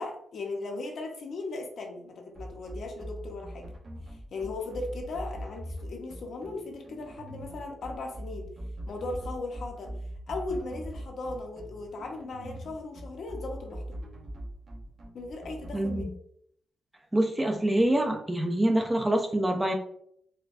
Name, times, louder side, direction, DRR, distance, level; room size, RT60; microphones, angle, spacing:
voice 1, 0.0-3.7 4.1-8.5 8.9-9.9 10.3-14.0 15.1-16.1, left 3 dB, 60° left, 1 dB, 0.7 m, -37 dB
sound 1, 2.3-16.0, right 1 dB, 50° right, 0.8 m, -41 dB
voice 2, 15.7-16.1 17.1-19.7, right 1 dB, 10° right, 3 dB, 0.4 m, -25 dB
4.3 x 2.2 x 2.5 m, 0.68 s
wide cardioid pair, 150°, 0 cm